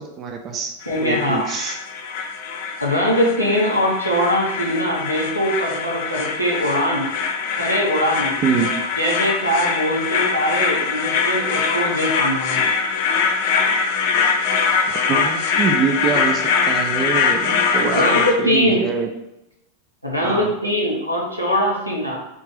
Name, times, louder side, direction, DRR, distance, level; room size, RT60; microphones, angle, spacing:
voice 1, 0.0-0.7 1.0-1.8 8.4-8.7 15.1-19.1 20.2-20.5, right 5 dB, 30° right, 3 dB, 0.4 m, -24 dB
sound 1, 0.8-18.3, left 5 dB, 50° left, 0.4 m, -22 dB
voice 2, 0.9-1.4 2.8-7.1 7.6-8.4 9.0-12.6 17.8-18.8 20.0-22.2, equal, 90° right, -3 dB, 0.9 m, -21 dB
3.6 x 2.5 x 3.3 m, 0.89 s
figure-of-eight pair, 90°, 0 cm